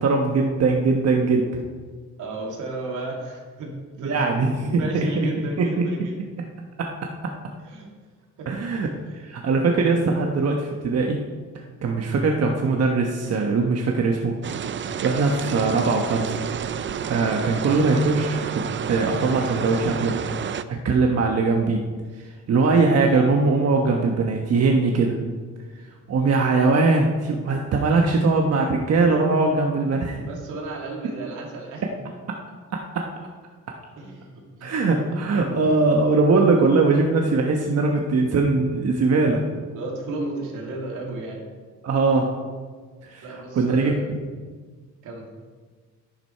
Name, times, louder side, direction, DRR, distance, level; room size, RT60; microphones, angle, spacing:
voice 1, 0.0-1.5 4.0-5.8 6.8-6.9 8.5-8.9 9.2-11.2 11.8-14.4 15.0-16.4 17.1-20.1 20.7-21.8 22.5-25.2 26.1-30.3 32.3-32.4 32.9-33.0 34.6-39.4 41.8-42.3 43.0-43.2 43.5-44.2, right 3 dB, 55° right, 1 dB, 1.3 m, -21 dB
voice 2, 2.2-4.3 4.8-6.2 7.6-7.9 8.4-8.5 30.3-32.1 34.0-35.3 35.6-35.8 39.7-41.4 43.2-44.1 45.0-45.2, right 2 dB, 85° right, -1 dB, 2.7 m, -34 dB
sound 1, 14.4-20.6, right 8 dB, 40° right, 0.5 m, -30 dB
11.5 x 9.5 x 4.6 m, 1.5 s
cardioid pair, 90°, 30 cm